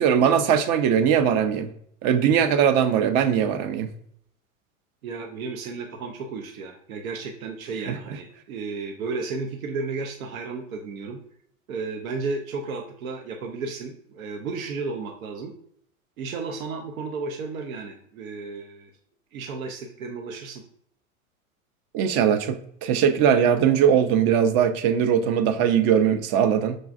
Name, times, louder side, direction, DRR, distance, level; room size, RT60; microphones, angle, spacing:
voice 1, 0.0-1.7 2.0-3.9 7.9-8.0 21.9-26.8, right 8 dB, 40° right, 8 dB, 0.5 m, -20 dB
voice 2, 5.0-11.2 11.7-15.5 16.2-18.9 19.3-20.6, right 4 dB, 80° right, 3 dB, 0.6 m, -33 dB
6.2 x 2.3 x 2.4 m, 0.68 s
hypercardioid pair, 95°, 41 cm